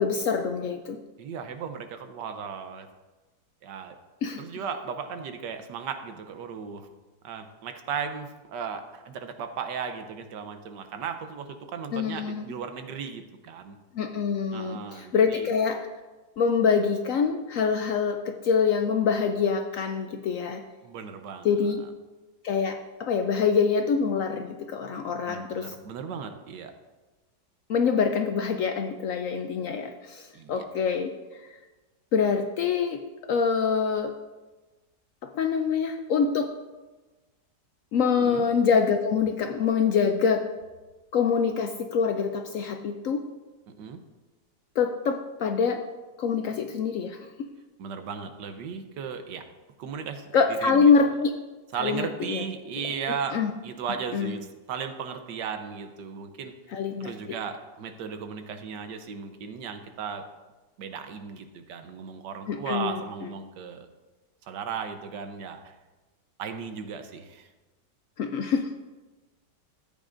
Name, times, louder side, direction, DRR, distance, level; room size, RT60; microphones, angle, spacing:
voice 1, 0.0-1.0 4.2-4.4 11.9-12.5 13.9-15.9 16.4-20.6 21.4-21.8 22.4-25.7 27.7-31.1 31.5-31.6 32.1-34.1 35.2-36.5 37.9-40.5 41.1-43.2 44.8-45.9 46.2-47.5 50.3-51.3 51.8-52.4 53.3-53.5 54.1-54.3 56.7-57.1 62.5-63.3 68.2-68.9, left 6 dB, 70° left, 6 dB, 0.8 m, -25 dB
voice 2, 1.2-2.9 3.6-4.0 4.4-6.9 7.2-13.8 14.5-15.5 20.8-21.5 25.3-26.7 30.3-30.6 38.2-38.4 43.8-44.0 47.8-49.4 49.8-50.9 51.7-56.5 57.0-60.3 60.8-63.9 64.4-65.7 66.4-67.5, right 6 dB, 85° right, 7 dB, 1.4 m, -36 dB
14.0 x 8.6 x 2.6 m, 1.2 s
omnidirectional pair, 1.8 m